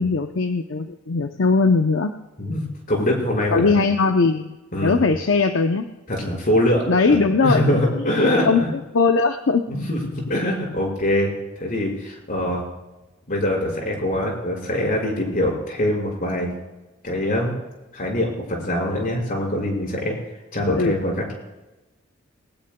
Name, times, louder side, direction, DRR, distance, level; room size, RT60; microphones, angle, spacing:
voice 1, 0.0-2.1 3.5-5.9 6.9-7.6 8.0-8.1 8.4-9.7 20.8-20.9, left 4 dB, 70° left, 6 dB, 0.6 m, -20 dB
voice 2, 2.4-3.8 4.7-5.0 6.1-8.7 9.7-11.3 11.6-12.6 13.3-16.5 17.0-17.6 17.9-20.2 20.5-21.3, left 1 dB, 45° left, -1 dB, 5.4 m, -23 dB
21.0 x 19.0 x 2.2 m, 1.1 s
head